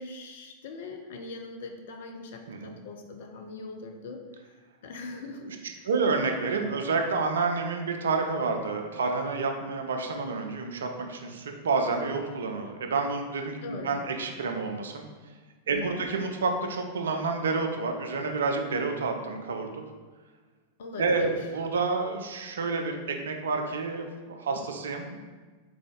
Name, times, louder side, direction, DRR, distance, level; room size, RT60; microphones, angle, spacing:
voice 1, 0.0-5.9 13.6-13.9 15.7-16.1 20.8-21.4, left 3 dB, 55° left, 4 dB, 0.5 m, -41 dB
voice 2, 5.8-15.0 15.7-19.8 21.0-23.0 23.2-25.2, right 4 dB, 65° right, 4 dB, 0.4 m, -29 dB
3.7 x 3.4 x 3.6 m, 1.4 s
figure-of-eight pair, 90°, 0 cm